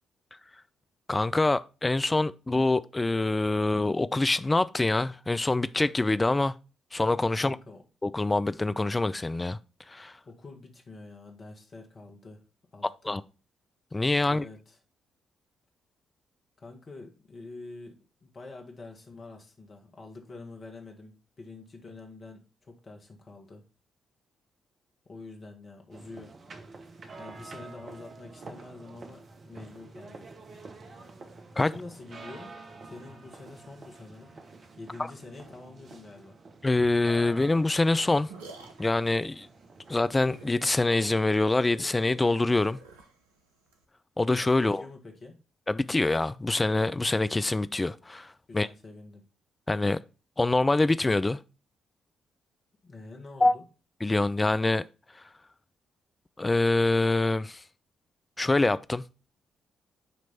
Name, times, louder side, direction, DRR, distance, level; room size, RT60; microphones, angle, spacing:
voice 1, 1.1-6.5 6.9-7.6 8.0-9.6 9.9-10.1 13.1-13.2 13.9-14.4 31.6-31.7 36.6-38.3 38.8-39.5 39.9-42.8 44.2-44.8 45.7-48.3 48.5-48.7 49.7-50.0 50.4-51.4 53.4-53.6 54.0-54.8 56.4-57.6 58.4-59.0, left 2 dB, 20° left, 0.4 m, -25 dB
voice 2, 7.4-7.8 10.2-12.4 12.7-13.2 14.2-14.8 16.6-23.6 25.0-26.3 27.2-30.3 31.6-32.5 32.8-34.3 34.8-36.4 44.6-45.4 48.5-49.2 52.8-53.6, left 3 dB, 45° left, 1.7 m, -46 dB
sound 1, 25.9-40.6, right 3 dB, 45° right, 1.0 m, -48 dB
sound 2, 37.8-43.8, right 4 dB, 80° right, 0.7 m, -50 dB
9.3 x 3.1 x 4.2 m
figure-of-eight pair, 40°, 0 cm